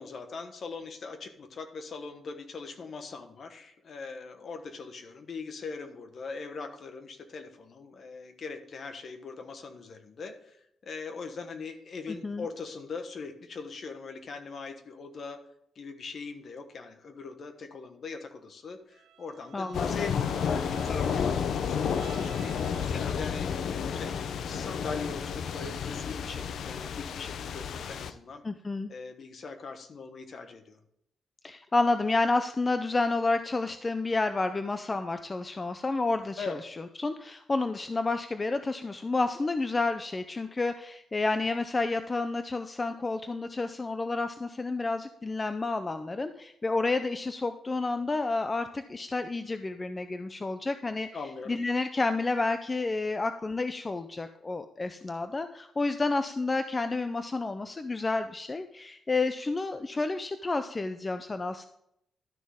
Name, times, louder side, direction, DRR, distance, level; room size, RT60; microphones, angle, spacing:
voice 1, 0.0-15.4 15.7-22.6 22.9-23.5 23.9-28.4 28.9-30.8 36.4-36.6 51.1-51.6, left 4 dB, 50° left, 7 dB, 1.2 m, -41 dB
Bowed string instrument, 18.9-23.6, right 10 dB, 75° right, 0.6 m, -53 dB
voice 2, 19.5-19.9 28.4-28.9 31.4-36.6 37.0-51.1 51.5-61.7, left 3 dB, 25° left, 9 dB, 0.5 m, -30 dB
sound 1, 19.7-28.1, left 7 dB, 75° left, 0.6 m, -31 dB
12.0 x 6.3 x 3.6 m, 0.76 s
cardioid pair, 115°, 0 cm